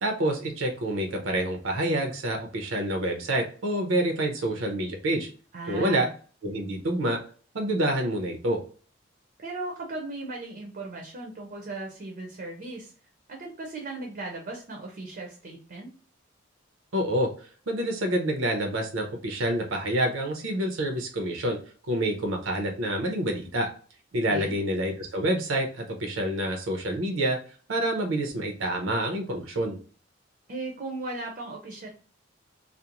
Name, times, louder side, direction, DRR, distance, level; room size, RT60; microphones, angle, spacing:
voice 1, 0.0-5.3 5.7-6.1 6.4-7.2 7.5-8.6 16.9-17.3 17.7-21.6 21.9-23.7 24.1-27.4 27.7-29.8, right 1 dB, 80° right, 3 dB, 0.7 m, -27 dB
voice 2, 5.5-6.1 9.4-12.9 13.3-15.9 24.3-24.5 30.5-31.9, right 2 dB, 45° right, 1 dB, 0.6 m, -37 dB
2.5 x 2.0 x 2.8 m, 0.40 s
head